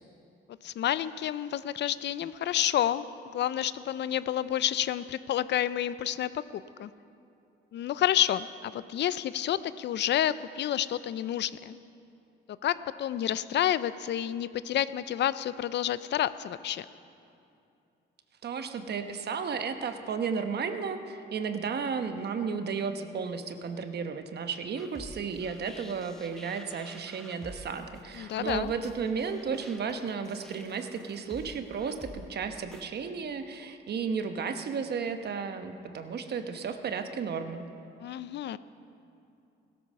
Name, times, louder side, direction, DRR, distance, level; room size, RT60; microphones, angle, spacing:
voice 1, 0.6-3.1 3.3-6.9 7.7-11.8 12.6-16.9 28.2-28.7 38.0-38.6, left 11 dB, 60° left, 16 dB, 0.5 m, -29 dB
voice 2, 18.4-37.7, right 6 dB, 55° right, 8 dB, 1.1 m, -33 dB
sound 1, 24.8-32.8, equal, ahead, 1.0 m, -49 dB
16.0 x 13.5 x 5.5 m, 2.6 s
cardioid pair, 90°, 20 cm